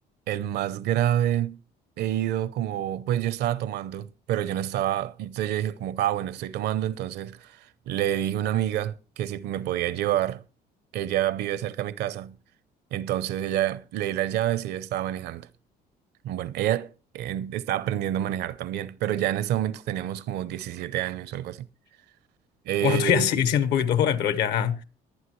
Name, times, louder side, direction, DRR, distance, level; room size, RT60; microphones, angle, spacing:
voice 1, 0.3-1.6 2.0-10.4 10.9-12.4 12.9-15.5 16.2-21.7 22.7-23.3, right 12 dB, 75° right, 0.7 m, -28 dB
voice 2, 22.8-24.8, left 9 dB, 80° left, 1.3 m, -23 dB
23.0 x 9.0 x 3.2 m
cardioid pair, 110°, 17 cm